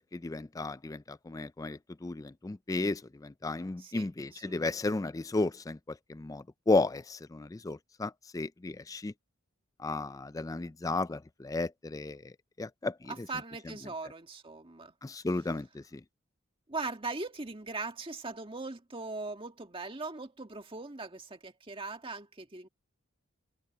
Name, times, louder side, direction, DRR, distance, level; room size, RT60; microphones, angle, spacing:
voice 1, 0.1-9.1 9.8-13.1 15.0-16.0, left 2 dB, 15° left, 0.3 m, -34 dB
voice 2, 3.8-4.7 13.1-14.9 16.7-22.7, right 3 dB, 25° right, 1.8 m, -40 dB
open air
head